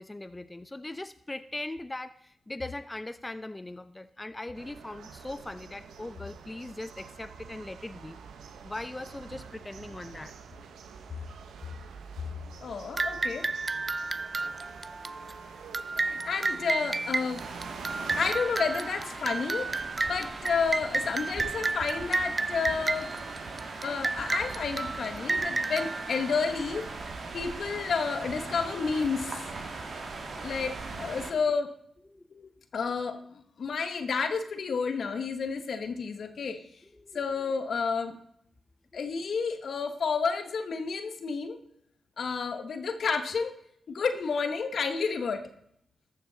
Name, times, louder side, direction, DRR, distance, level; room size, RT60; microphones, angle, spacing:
voice 1, 0.0-8.2 8.6-10.3 30.2-30.4 32.1-32.3 36.9-37.2, left 2 dB, 25° left, 11 dB, 0.5 m, -40 dB
sound 1, 4.5-18.3, right 6 dB, 85° right, 0.8 m, -47 dB
voice 2, 12.6-13.5 16.0-17.4 18.2-19.7 20.1-23.1 23.8-26.8 27.3-29.4 30.4-31.7 32.4-36.6 37.1-38.1 38.9-41.6 42.2-43.5 43.9-45.4, left 5 dB, 70° left, 9 dB, 1.0 m, -30 dB
sound 2, 13.0-27.1, right 3 dB, 40° right, 0.5 m, -32 dB
sound 3, 17.4-31.3, right 3 dB, 65° right, 1.7 m, -40 dB
13.5 x 6.6 x 3.9 m, 0.70 s
supercardioid pair, 40°, 0 cm